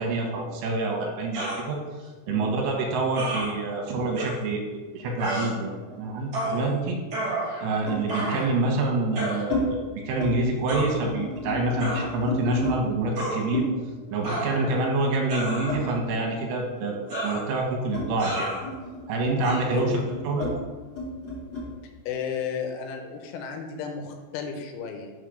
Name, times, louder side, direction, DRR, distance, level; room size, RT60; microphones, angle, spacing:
voice 1, 0.0-1.8 2.3-4.6 4.9-7.0 7.6-13.6 14.1-17.0 17.2-18.5 19.1-20.5, right 2 dB, 75° right, 1 dB, 3.0 m, -27 dB
sound 1, 1.3-1.6 3.1-3.5 4.1-4.3 5.2-5.5 6.3-6.6 7.1-7.7 8.1-8.5 9.2-9.4 10.7-10.9 11.8-12.1 13.2-13.4 14.2-14.8 15.3-15.9 17.1-17.4 18.2-18.6 19.4-19.6, right 1 dB, 45° right, 3.7 m, -30 dB
sound 2, 5.0-6.6 7.9-8.1 8.8-9.6 10.0-10.3 10.6-12.8 13.5-16.4 16.7-21.7, left 2 dB, 35° left, 2.6 m, -33 dB
voice 2, 22.1-25.1, left 6 dB, 85° left, 4 dB, 3.2 m, -33 dB
6.8 x 4.9 x 6.3 m, 1.3 s
omnidirectional pair, 5.7 m